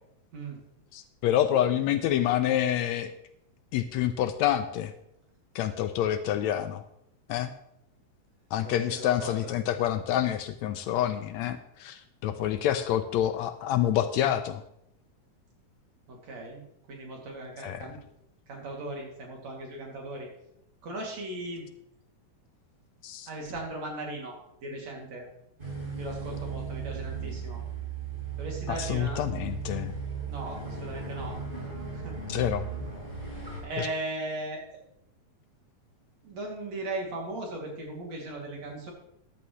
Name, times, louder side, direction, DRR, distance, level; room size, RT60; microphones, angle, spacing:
voice 1, 0.9-3.1 3.7-4.9 5.5-6.8 7.3-7.5 8.5-14.6 17.6-17.9 23.0-23.3 28.7-29.9 32.3-32.7 33.8-33.9, left 11 dB, 80° left, 10 dB, 1.7 m, -27 dB
voice 2, 8.6-9.5 16.1-16.6 16.9-18.0 18.5-20.3 20.8-21.6 23.3-24.4 24.6-25.2 26.0-27.6 28.4-29.2 30.3-31.4 31.9-32.2 33.6-34.6 36.2-38.9, right 2 dB, 60° right, -1 dB, 3.6 m, -37 dB
sound 1, 25.6-33.6, right 5 dB, 15° right, 4.9 m, -36 dB
14.0 x 11.0 x 3.1 m, 0.78 s
omnidirectional pair, 3.4 m